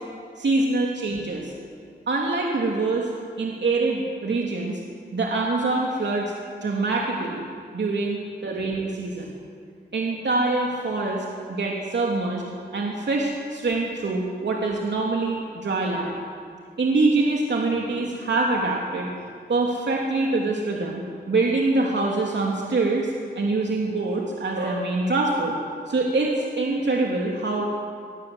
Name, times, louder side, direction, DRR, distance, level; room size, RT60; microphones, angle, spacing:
voice 1, 0.4-1.5 2.1-3.1 3.4-4.8 5.1-6.3 6.6-7.5 7.7-9.3 9.9-16.2 16.8-19.1 19.5-25.5 25.9-27.7, right 3 dB, 80° right, -1 dB, 3.1 m, -25 dB
24.5 x 21.0 x 8.0 m, 2.2 s
wide cardioid pair, 95°, 18 cm